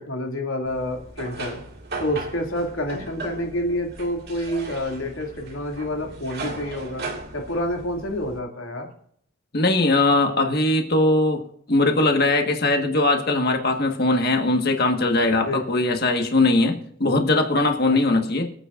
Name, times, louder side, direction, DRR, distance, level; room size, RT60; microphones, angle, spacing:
voice 1, 0.0-1.6 2.0-7.1 7.3-8.9 15.5-15.6 17.9-18.0, left 1 dB, 80° left, 2 dB, 2.5 m, -28 dB
sound 1, 0.7-8.4, right 3 dB, 50° right, 2.1 m, -37 dB
voice 2, 9.5-11.4 11.7-18.5, left 2 dB, 50° left, 4 dB, 1.6 m, -20 dB
26.0 x 9.1 x 2.6 m, 0.66 s
head